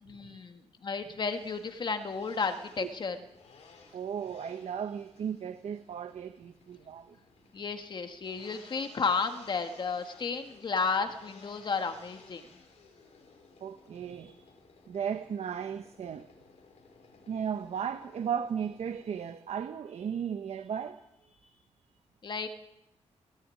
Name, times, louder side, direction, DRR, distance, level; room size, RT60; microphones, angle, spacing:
voice 1, 0.0-3.2 7.5-12.4 22.2-22.5, left 5 dB, 40° left, 7 dB, 1.7 m, -33 dB
sound 1, 1.0-19.3, left 4 dB, 65° left, 5.8 m, -57 dB
voice 2, 3.9-7.2 13.6-14.4 14.9-16.3 17.3-21.6, right 8 dB, 60° right, 9 dB, 1.1 m, -36 dB
20.5 x 17.0 x 9.9 m, 0.89 s
wide cardioid pair, 175°, 12 cm